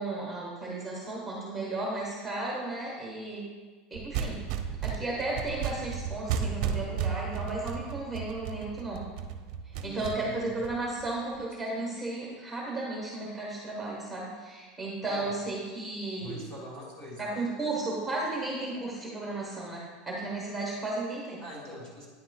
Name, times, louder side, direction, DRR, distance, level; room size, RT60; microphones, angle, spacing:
voice 1, 0.0-3.4 3.9-4.4 4.8-9.1 9.6-16.4 17.2-21.4, right 2 dB, ahead, -4 dB, 1.3 m, -34 dB
sound 1, 3.9-11.4, right 7 dB, 50° right, 0.6 m, -34 dB
voice 2, 9.8-10.5 15.0-15.3 16.2-17.3 21.4-22.1, equal, 20° left, -3 dB, 1.4 m, -43 dB
9.5 x 7.4 x 2.3 m, 1.4 s
supercardioid pair, 175°, 4 cm